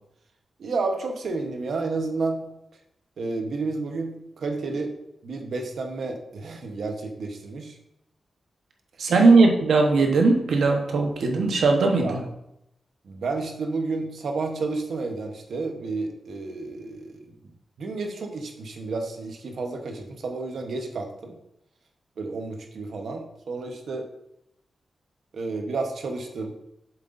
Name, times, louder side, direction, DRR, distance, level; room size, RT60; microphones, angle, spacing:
voice 1, 0.6-2.4 3.2-4.9 5.2-7.7 12.0-12.2 13.1-17.2 17.8-21.4 22.2-24.0 25.3-26.5, right 3 dB, 65° right, 4 dB, 1.0 m, -31 dB
voice 2, 9.0-12.1, right 3 dB, 90° right, 2 dB, 1.1 m, -19 dB
7.7 x 7.4 x 2.6 m, 0.82 s
wide cardioid pair, 170°, 0 cm